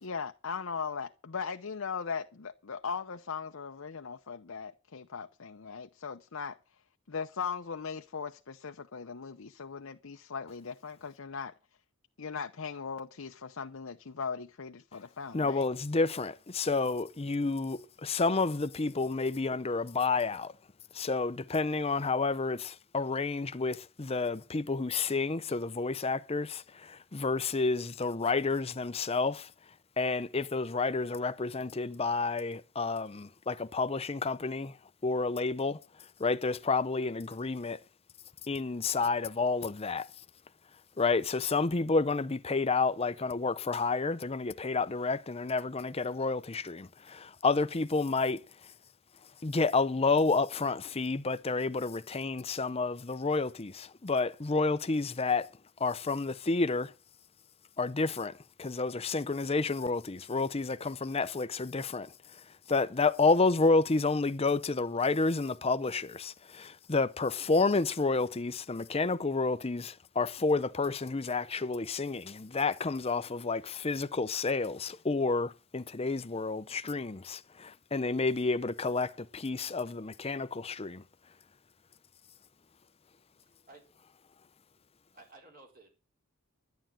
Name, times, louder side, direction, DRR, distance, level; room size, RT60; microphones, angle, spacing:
voice 1, 0.0-6.6 7.1-11.5 12.2-15.7, left 5 dB, 65° left, 0.7 m, -39 dB
voice 2, 15.3-20.5 20.9-29.5 30.0-34.8 35.0-35.8 36.2-37.8 38.4-40.1 41.0-48.4 49.4-55.5 55.8-56.9 57.8-81.0, left 3 dB, 30° left, 0.6 m, -30 dB
voice 3, 85.1-85.9, right 2 dB, 40° right, 4.3 m, -54 dB
11.5 x 10.5 x 7.5 m
head